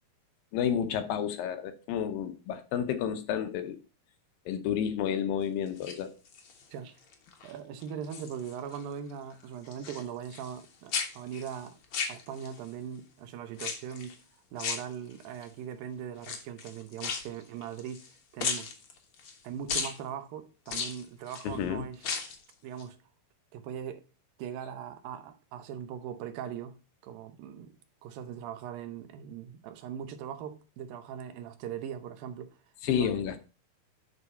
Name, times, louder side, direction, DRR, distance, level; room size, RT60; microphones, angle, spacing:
voice 1, 0.5-3.8 4.5-6.1 21.5-21.8 32.8-33.4, left 9 dB, 75° left, 2.5 m, -30 dB
sound 1, 5.7-6.6 7.1-7.5 7.8-8.8 9.1-10.6 10.9-12.7 13.5-14.2 14.6-15.4 16.2-18.1 18.4-19.4 19.7-20.0 20.7-21.5 21.9-22.4 22.8-22.9, left 5 dB, 60° left, 1.4 m, -36 dB
voice 2, 7.4-11.8 12.1-14.2 14.5-18.1 18.3-18.7 19.4-22.1 22.6-23.0 23.5-24.0 24.4-26.8 27.0-27.8 28.0-32.6 32.9-33.1, right 8 dB, 75° right, 2.5 m, -40 dB
11.0 x 3.9 x 5.4 m
omnidirectional pair, 4.3 m